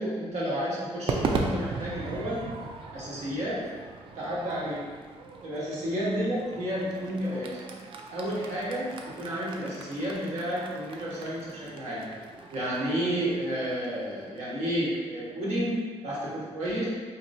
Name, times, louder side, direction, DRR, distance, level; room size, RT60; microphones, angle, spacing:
voice 1, 0.0-2.5 2.9-3.7 4.1-4.9 5.4-7.6 8.1-12.0 12.5-16.9, equal, 90° right, -7 dB, 1.3 m, -31 dB
Crowd / Fireworks, 1.1-15.5, right 3 dB, 50° right, 0.4 m, -38 dB
4.4 x 2.9 x 2.6 m, 1.5 s
wide cardioid pair, 175°, 11 cm